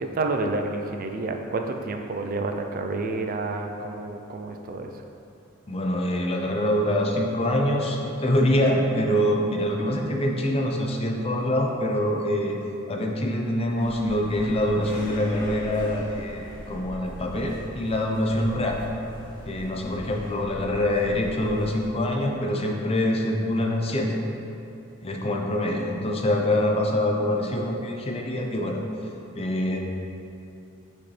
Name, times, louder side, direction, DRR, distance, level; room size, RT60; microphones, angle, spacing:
voice 1, 0.0-4.9, right 3 dB, 45° right, 5 dB, 0.4 m, -29 dB
voice 2, 5.7-12.6 12.9-16.4 16.7-18.8 19.5-24.1 25.0-28.8 29.4-29.8, left 1 dB, 30° left, 1 dB, 0.6 m, -25 dB
sound 1, 13.8-21.7, equal, 45° left, 1.4 m, -40 dB
7.0 x 5.0 x 3.2 m, 2.7 s
head